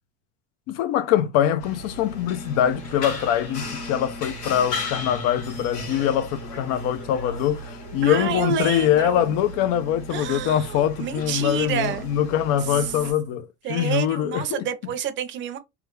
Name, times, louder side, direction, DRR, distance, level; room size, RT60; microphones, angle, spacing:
voice 1, 0.7-14.7, left 10 dB, 60° left, 0.5 m, -23 dB
sound 1, 1.6-13.1, left 2 dB, 80° left, 1.7 m, -36 dB
voice 2, 8.0-9.3 10.1-12.1 12.7-12.9 13.6-15.6, right 8 dB, 40° right, 0.6 m, -29 dB
3.2 x 2.2 x 3.1 m
cardioid pair, 150°, 30 cm